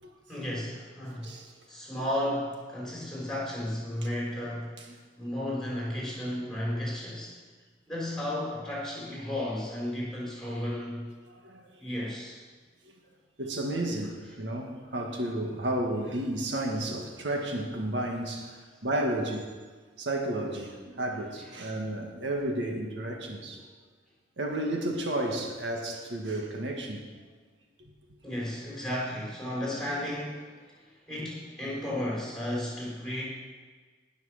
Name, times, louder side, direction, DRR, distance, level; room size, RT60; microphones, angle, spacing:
voice 1, 0.3-1.3 1.7-4.8 5.2-7.4 7.9-11.1 11.8-12.4 23.5-23.7 28.2-33.2, left 1 dB, 5° left, -6 dB, 5.2 m, -34 dB
voice 2, 11.3-11.6 13.4-19.5 20.0-23.6 24.4-27.0, right 1 dB, 80° right, 2 dB, 1.8 m, -32 dB
19.0 x 6.5 x 6.5 m, 1.4 s
head